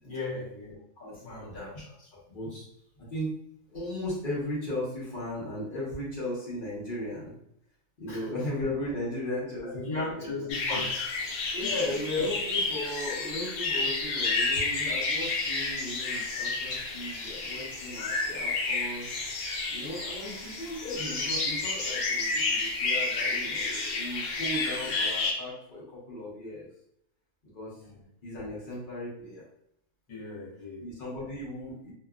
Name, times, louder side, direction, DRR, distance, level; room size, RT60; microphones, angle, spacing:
voice 1, 0.0-0.8 1.2-1.5 8.1-8.2 9.6-10.9 11.6-11.7 12.2-12.3 27.8-27.9 30.1-30.8, left 3 dB, 60° left, -6 dB, 1.4 m, -36 dB
voice 2, 1.0-2.7 3.0-3.3 3.7-7.3 8.0-10.4 11.5-19.1 19.7-26.7 27.5-27.8 28.2-29.4 30.8-31.9, left 1 dB, 40° left, -6 dB, 0.9 m, -36 dB
sound 1, 10.5-25.3, left 3 dB, 90° left, 1.1 m, -30 dB
2.8 x 2.2 x 2.3 m, 0.76 s
omnidirectional pair, 1.5 m